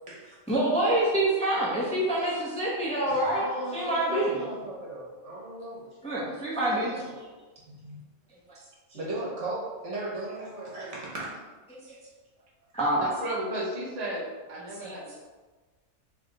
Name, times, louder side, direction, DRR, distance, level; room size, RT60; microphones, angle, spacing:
voice 1, 0.5-3.4 3.7-4.4 6.0-6.9 8.9-9.0 11.7-11.8 12.7-13.1 14.8-15.2, right 1 dB, 5° left, -7 dB, 0.8 m, -26 dB
voice 2, 3.1-5.9 6.2-6.3 6.7-7.3 7.7-8.0 8.9-11.3, right 2 dB, 60° right, -5 dB, 1.4 m, -37 dB
voice 3, 13.0-15.2, right 1 dB, 35° right, -5 dB, 0.9 m, -34 dB
3.4 x 3.2 x 3.8 m, 1.3 s
omnidirectional pair, 1.4 m